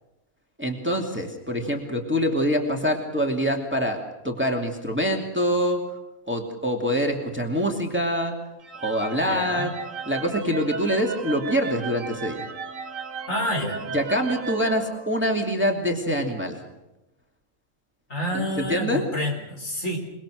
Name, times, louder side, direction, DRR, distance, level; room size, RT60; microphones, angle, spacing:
voice 1, 0.6-5.8 6.3-8.3 8.8-9.7 10.1-12.4 13.9-16.6 18.3-19.0, equal, 10° right, 2 dB, 2.6 m, -25 dB
sound 1, 8.6-15.6, right 5 dB, 65° right, 1.6 m, -35 dB
voice 2, 9.3-9.7 13.3-13.8 18.1-20.0, left 1 dB, 65° left, 2 dB, 4.8 m, -28 dB
28.0 x 20.5 x 6.5 m, 0.96 s
omnidirectional pair, 1.5 m